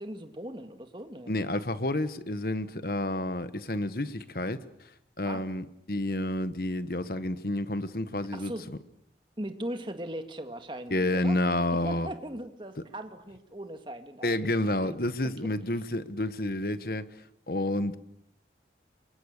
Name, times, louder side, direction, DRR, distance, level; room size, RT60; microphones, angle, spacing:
voice 1, 0.0-1.3 5.3-5.5 8.3-8.7 9.4-11.4 11.7-15.0 15.4-15.5, right 1 dB, 25° right, 2.0 m, -39 dB
voice 2, 1.3-4.6 5.2-8.5 10.9-12.1 14.2-17.0 17.5-18.0, left 1 dB, 55° left, 1.4 m, -29 dB
29.0 x 24.0 x 6.7 m
head